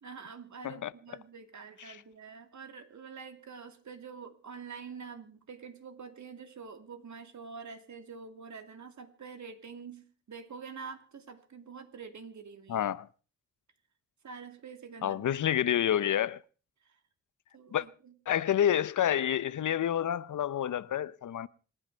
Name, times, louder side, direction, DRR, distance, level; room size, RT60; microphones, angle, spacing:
voice 1, 0.0-12.9 14.2-15.3 16.8-17.0 17.5-18.1, right 5 dB, 70° right, 2.7 m, -46 dB
voice 2, 12.7-13.1 15.0-16.4 17.7-17.9 18.3-21.5, left 10 dB, 80° left, 0.8 m, -28 dB
27.0 x 10.0 x 4.5 m
cardioid pair, 70°, 30 cm